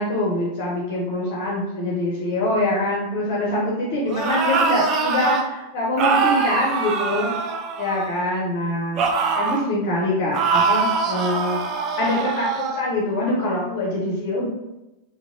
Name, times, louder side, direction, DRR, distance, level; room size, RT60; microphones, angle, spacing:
voice 1, 0.0-7.3 7.8-9.0 9.4-11.6 12.0-14.5, left 1 dB, 50° left, -4 dB, 0.6 m, -24 dB
sound 1, 4.1-5.4 6.0-8.2 9.0-9.7 10.3-12.8, right 4 dB, 35° right, 0.3 m, -23 dB
2.8 x 2.1 x 2.5 m, 0.97 s
figure-of-eight pair, 90°, 0 cm